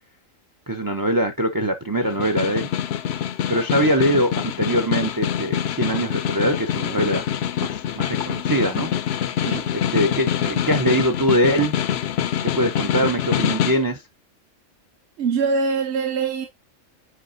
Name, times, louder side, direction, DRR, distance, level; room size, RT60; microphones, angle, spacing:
voice 1, 0.7-2.7 3.5-7.2 7.6-8.9 9.2-9.3 9.7-11.7 12.5-14.0, right 1 dB, 30° right, 0.3 m, -22 dB
Snare drum, 2.0-13.9, left 9 dB, 65° left, 0.7 m, -25 dB
voice 2, 15.2-16.5, right 5 dB, 55° right, 1.0 m, -23 dB
8.1 x 4.9 x 2.5 m
omnidirectional pair, 1.4 m